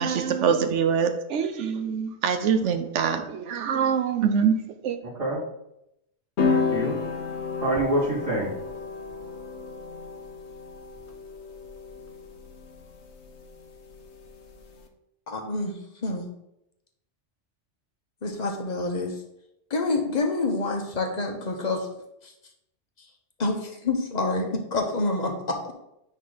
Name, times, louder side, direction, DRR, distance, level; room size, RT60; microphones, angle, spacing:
voice 1, 0.0-4.6 4.8-5.0, right 7 dB, 90° right, 8 dB, 1.0 m, -24 dB
voice 2, 5.0-5.4 6.4-7.0 7.6-8.5, right 1 dB, 30° right, -10 dB, 2.7 m, -26 dB
sound 1, 6.4-14.8, left 4 dB, 70° left, 1.0 m, -32 dB
voice 3, 15.3-16.3 18.2-19.2 19.7-21.9 22.2-22.3 23.0-23.1 23.4-25.7, left 2 dB, 40° left, 3 dB, 1.0 m, -27 dB
9.6 x 3.3 x 3.9 m, 0.83 s
omnidirectional pair, 1.2 m